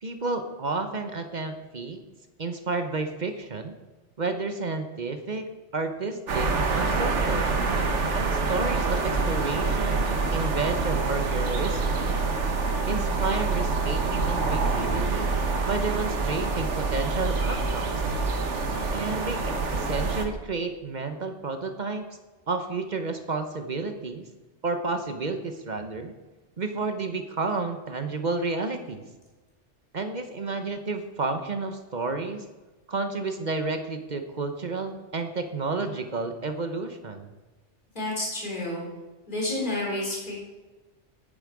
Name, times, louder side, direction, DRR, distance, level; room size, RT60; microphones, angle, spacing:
voice 1, 0.0-2.0 2.4-3.7 4.2-6.5 6.7-7.5 8.1-12.1 12.9-15.3 15.7-18.0 18.9-22.1 22.5-24.2 24.6-26.1 26.6-29.0 29.9-32.5 32.9-37.3, right 3 dB, 40° right, 7 dB, 0.9 m, -31 dB
sound 1, 6.3-20.3, right 3 dB, 80° right, 1.5 m, -26 dB
voice 2, 37.9-38.8 39.3-40.4, left 1 dB, 40° left, -5 dB, 4.2 m, -30 dB
10.5 x 8.9 x 4.8 m, 1.2 s
omnidirectional pair, 1.2 m